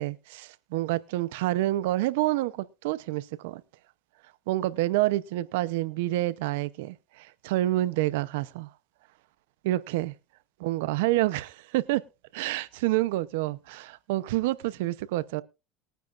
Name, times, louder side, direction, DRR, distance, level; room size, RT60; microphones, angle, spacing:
voice 1, 0.0-3.6 4.5-8.7 9.6-10.1 10.6-12.0 12.3-15.4, right 16 dB, 80° right, 0.7 m, -28 dB
21.0 x 9.2 x 2.5 m
supercardioid pair, 120°, 0 cm